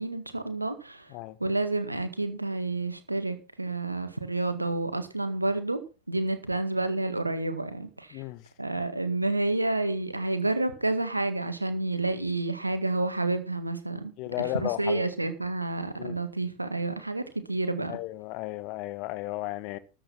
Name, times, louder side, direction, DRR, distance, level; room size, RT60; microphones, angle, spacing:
voice 1, 0.0-1.1 1.4-5.8 6.1-8.2 8.6-14.1 14.4-18.0, right 2 dB, 90° right, 1.7 m, -29 dB
voice 2, 14.2-15.0 16.0-16.2 17.9-19.8, left 17 dB, 45° left, 1.2 m, -34 dB
13.0 x 7.9 x 5.8 m
figure-of-eight pair, 85°, 0 cm